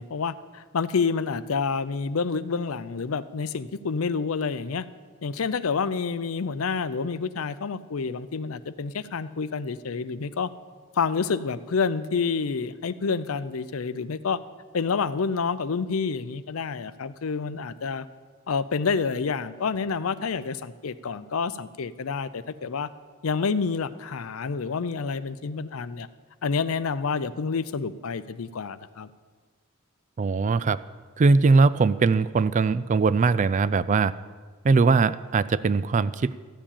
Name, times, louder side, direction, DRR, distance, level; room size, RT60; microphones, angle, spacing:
voice 1, 0.0-4.9 5.2-10.5 10.9-14.4 14.7-18.1 18.5-22.9 23.2-26.1 26.4-29.1, left 5 dB, 80° left, 15 dB, 0.5 m, -28 dB
voice 2, 30.2-30.8 31.2-34.1 34.6-36.3, right 4 dB, 35° right, 16 dB, 0.3 m, -21 dB
13.5 x 7.4 x 8.8 m, 1.5 s
head